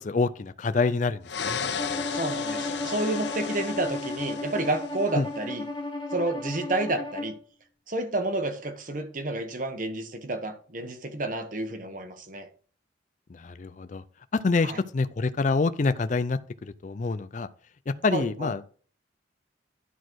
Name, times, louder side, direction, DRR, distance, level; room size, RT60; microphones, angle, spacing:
voice 1, 0.0-1.6 5.1-5.3 13.3-14.0 14.3-17.5 17.9-18.7, left 3 dB, 40° left, 0.4 m, -27 dB
sound 1, 1.2-5.2, left 6 dB, 65° left, 0.7 m, -34 dB
Bowed string instrument, 1.8-7.4, left 2 dB, 25° left, 1.0 m, -34 dB
voice 2, 2.1-5.6 6.1-7.4 7.9-12.5 14.6-14.8 18.1-18.5, right 2 dB, 45° right, 1.1 m, -30 dB
11.0 x 4.1 x 4.6 m
head